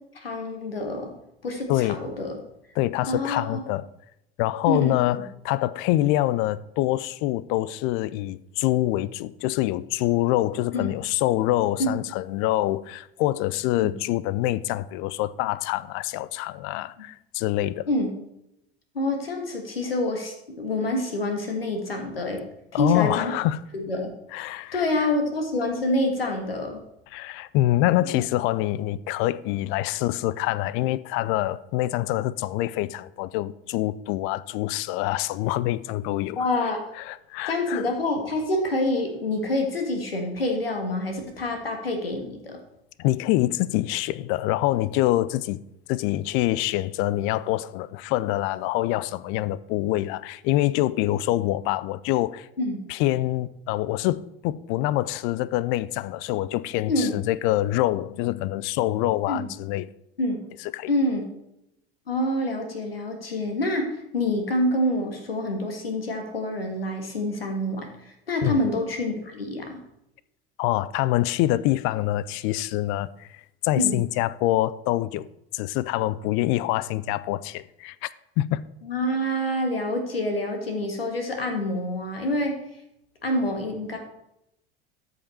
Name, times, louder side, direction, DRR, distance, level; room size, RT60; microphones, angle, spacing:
voice 1, 0.1-1.1 1.4-2.4 3.1-3.6 4.7-5.0 10.7-10.9 11.8-11.9 13.7-13.9 17.9-18.1 18.9-22.4 22.7-23.4 23.7-24.1 24.7-26.8 28.1-28.2 36.4-36.8 37.5-42.6 52.6-52.8 56.9-57.2 59.3-59.5 60.2-60.4 60.9-61.3 62.1-69.8 73.7-74.0 78.8-82.6 83.2-84.0, left 1 dB, 80° left, 1.6 m, -27 dB
voice 2, 2.8-3.9 4.4-17.9 22.7-23.6 24.3-24.9 27.1-36.4 37.0-37.8 43.0-45.6 45.9-52.5 52.9-59.9 60.7-60.9 68.4-68.6 70.6-75.3 75.5-78.1 78.4-78.6, left 15 dB, 45° left, 0.5 m, -25 dB
13.0 x 5.4 x 4.3 m
figure-of-eight pair, 70°, 29 cm